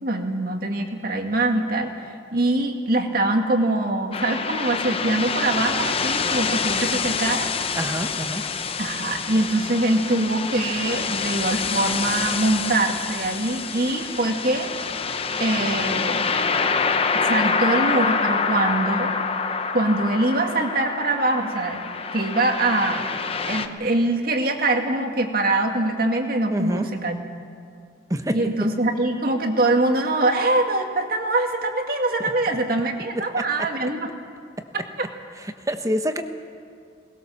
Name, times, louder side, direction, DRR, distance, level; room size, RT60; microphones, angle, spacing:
voice 1, 0.0-1.9 2.3-7.5 8.8-14.7 15.4-16.3 17.1-19.1 19.7-21.9 22.1-23.1 23.5-27.2 28.3-34.1 34.7-34.8, right 2 dB, 50° right, 4 dB, 2.1 m, -23 dB
sound 1, 4.1-23.7, left 5 dB, 30° left, 0.8 m, -26 dB
voice 2, 7.7-8.4 26.5-26.9 28.1-28.4 33.1-33.4 33.8-33.9 35.4-36.2, equal, 20° right, 7 dB, 1.1 m, -26 dB
23.0 x 20.0 x 7.0 m, 2.2 s
head